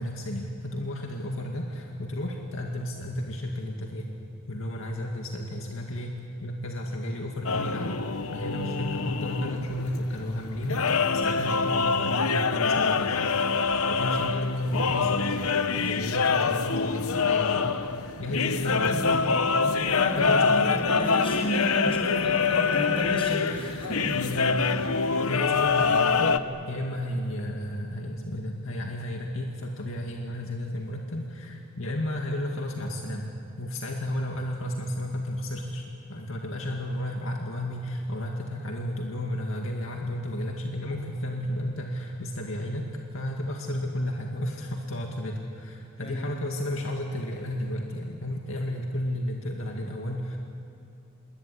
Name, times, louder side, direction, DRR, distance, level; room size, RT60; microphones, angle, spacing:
voice 1, 0.0-4.1 4.5-8.0 8.3-13.3 13.8-17.9 18.2-19.2 20.2-20.6 24.1-24.6 25.1-26.4 26.7-35.8 36.1-50.4, left 1 dB, 65° left, 1 dB, 2.2 m, -33 dB
sound 1, 7.5-26.4, left 5 dB, 85° left, 1.0 m, -25 dB
voice 2, 18.6-24.3 24.7-24.8 46.0-46.2, equal, 25° left, 1 dB, 5.9 m, -33 dB
26.5 x 22.0 x 9.7 m, 2.5 s
head